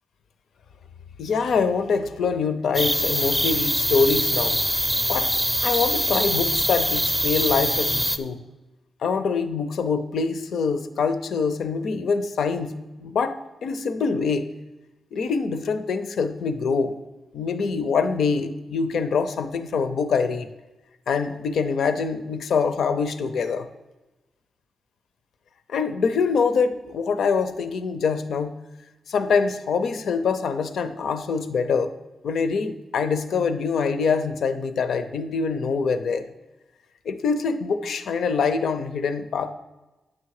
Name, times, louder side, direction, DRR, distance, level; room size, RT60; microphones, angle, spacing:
voice 1, 1.2-4.6 5.1-5.3 5.6-8.4 9.0-14.5 15.1-16.9 17.3-20.5 21.1-23.7 25.7-28.6 29.1-31.9 32.2-36.2 37.0-39.5, left 5 dB, 70° left, 11 dB, 0.6 m, -24 dB
sound 1, 2.7-8.2, equal, ahead, 0.4 m, -23 dB
9.7 x 7.4 x 4.8 m, 1.1 s
wide cardioid pair, 155°, 0 cm